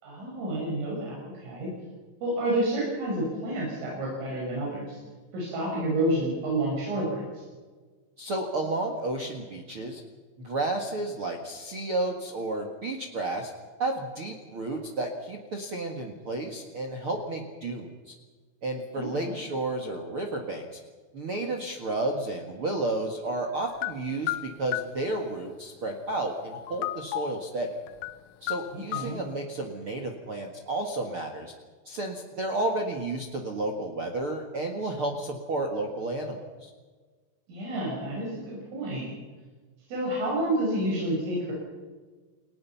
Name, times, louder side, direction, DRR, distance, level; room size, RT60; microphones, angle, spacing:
voice 1, 0.0-1.7 2.2-5.0 5.3-7.4 19.0-19.3 28.7-29.2 37.5-39.1 39.9-41.5, right 1 dB, 80° right, -4 dB, 8.6 m, -29 dB
voice 2, 8.2-10.0 10.4-13.5 13.8-18.1 18.6-20.8 21.1-27.7 28.4-31.5 31.8-36.7, right 2 dB, 65° right, 3 dB, 1.3 m, -32 dB
sound 1, 23.8-25.0 26.5-27.4 27.9-28.2 28.5-29.1, left 15 dB, 80° left, 3.4 m, -33 dB
29.5 x 19.0 x 5.8 m, 1.4 s
omnidirectional pair, 5.7 m